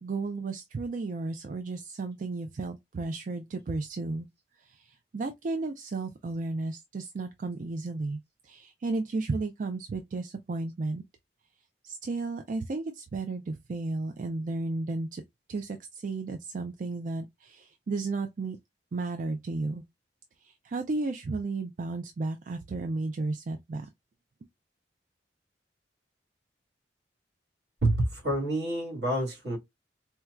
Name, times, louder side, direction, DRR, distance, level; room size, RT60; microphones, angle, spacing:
voice 1, 0.0-4.3 4.7-11.0 11.8-15.2 15.5-18.6 18.9-19.8 20.4-23.9, right 3 dB, 45° right, 0.4 m, -33 dB
voice 2, 27.8-29.6, right 1 dB, 70° right, 1.9 m, -28 dB
4.4 x 2.2 x 2.3 m
head